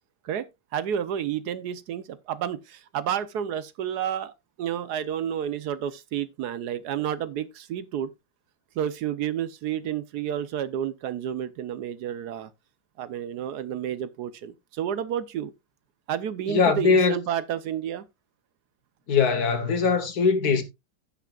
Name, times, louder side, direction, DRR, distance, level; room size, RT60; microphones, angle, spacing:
voice 1, 0.7-8.1 8.8-12.5 13.0-15.5 16.1-18.0, right 9 dB, 70° right, 1.2 m, -30 dB
voice 2, 16.5-17.2 19.1-20.6, left 5 dB, 60° left, 1.7 m, -21 dB
16.5 x 5.8 x 2.4 m
omnidirectional pair, 1.9 m